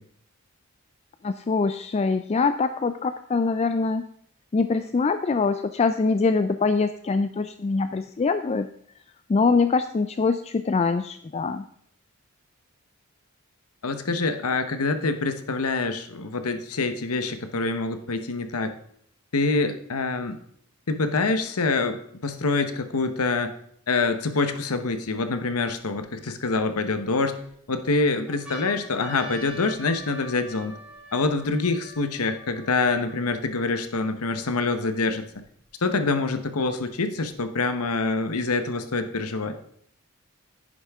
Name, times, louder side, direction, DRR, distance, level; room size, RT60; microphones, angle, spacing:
voice 1, 1.2-4.1 4.5-8.7 9.3-11.7, left 4 dB, 30° left, 10 dB, 0.3 m, -24 dB
voice 2, 13.8-18.7 19.3-20.4 20.9-23.5 23.9-27.4 27.7-30.8 31.1-35.4 35.8-39.5, left 3 dB, 80° left, 9 dB, 1.0 m, -26 dB
sound 1, 28.3-33.9 34.6-34.7 34.9-35.9 36.8-37.9, right 1 dB, 5° right, 3.8 m, -45 dB
10.5 x 10.0 x 3.5 m, 0.67 s
head